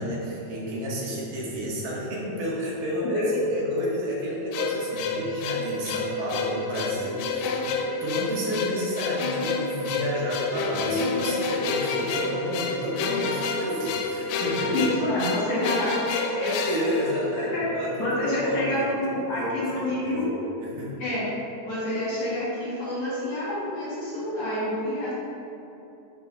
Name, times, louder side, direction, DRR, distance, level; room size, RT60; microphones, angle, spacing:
voice 1, 0.0-3.2 3.5-14.8 15.6-15.7 16.7-18.8 19.3-20.3 20.6-21.0, equal, 70° right, -5 dB, 2.1 m, -31 dB
voice 2, 3.0-3.4 14.7-16.5 17.5-17.7 18.0-20.3 21.0-21.3 21.6-25.1, left 1 dB, 50° left, -9 dB, 1.8 m, -28 dB
sound 1, 4.5-17.8, left 4 dB, 85° left, 2.6 m, -29 dB
6.9 x 4.5 x 4.8 m, 2.9 s
omnidirectional pair, 4.8 m